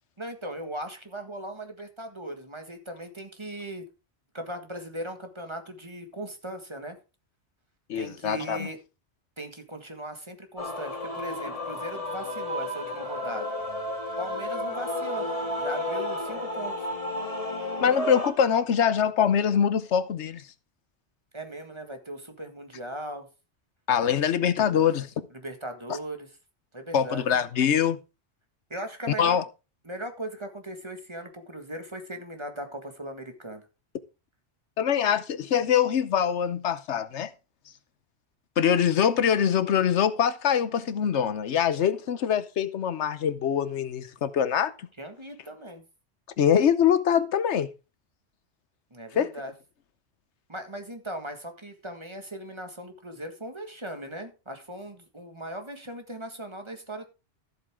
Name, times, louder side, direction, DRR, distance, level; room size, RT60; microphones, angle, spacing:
voice 1, 0.2-3.8 4.3-7.0 8.0-8.8 9.4-13.5 14.2-16.9 21.3-23.3 25.3-26.3 26.7-27.2 28.7-29.4 29.9-33.6 45.0-45.8 48.9-49.5 50.5-57.0, right 1 dB, 25° right, 1.7 m, -38 dB
voice 2, 7.9-8.7 17.8-20.4 23.9-25.1 26.9-28.0 29.2-29.4 34.8-37.3 38.6-44.9 46.4-47.7 49.2-49.3, left 8 dB, 80° left, 1.1 m, -24 dB
Male singing / Female singing / Musical instrument, 10.6-18.3, left 1 dB, 30° left, 2.0 m, -32 dB
13.5 x 8.0 x 3.6 m
omnidirectional pair, 1.1 m